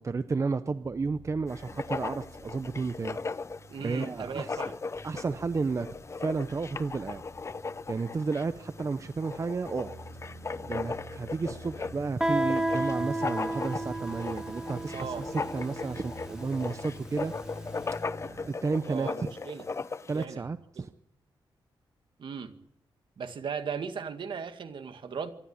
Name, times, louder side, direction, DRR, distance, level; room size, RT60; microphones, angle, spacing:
voice 1, 0.0-3.2 3.8-4.6 5.0-5.9 6.2-7.2 7.9-9.9 10.7-17.3 18.5-19.3 20.1-20.9, right 4 dB, 35° right, 12 dB, 0.8 m, -32 dB
sound 1, 0.8-18.5, equal, 15° left, 6.4 m, -48 dB
Writing, 1.5-20.3, left 4 dB, 30° left, 0.8 m, -38 dB
voice 2, 3.7-4.7 14.9-15.2 18.9-19.7 20.1-20.4 20.8-20.9 22.2-22.5 23.2-25.3, right 6 dB, 65° right, 8 dB, 2.0 m, -37 dB
Guitar, 12.2-17.7, right 1 dB, 5° right, 2.8 m, -32 dB
24.0 x 13.0 x 10.0 m, 0.77 s
wide cardioid pair, 110°, 9 cm